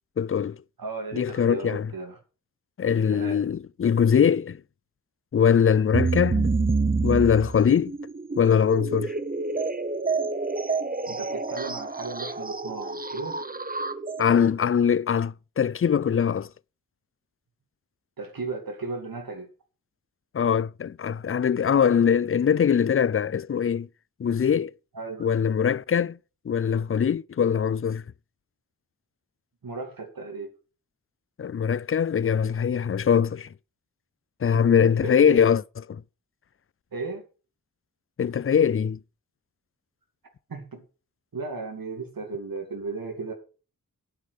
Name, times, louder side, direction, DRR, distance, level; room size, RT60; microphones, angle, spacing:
voice 1, 0.2-0.6 1.1-1.9 2.8-4.6 5.3-6.5 7.0-8.0 8.4-9.1 14.2-16.5 20.3-23.9 24.2-24.7 25.2-26.2 26.5-28.0 31.4-33.5 34.4-35.6 35.9-36.0 38.2-39.0, left 7 dB, 40° left, 0.5 m, -22 dB
voice 2, 0.8-2.1 3.1-3.4 11.1-13.4 18.2-19.5 24.9-25.3 29.6-30.5 34.5-35.4 36.9-37.2 40.5-40.8 41.3-43.3, right 3 dB, 75° right, 2.6 m, -35 dB
sound 1, 5.9-14.5, right 4 dB, 25° right, 1.0 m, -28 dB
8.9 x 7.5 x 6.7 m
cardioid pair, 45°, 35 cm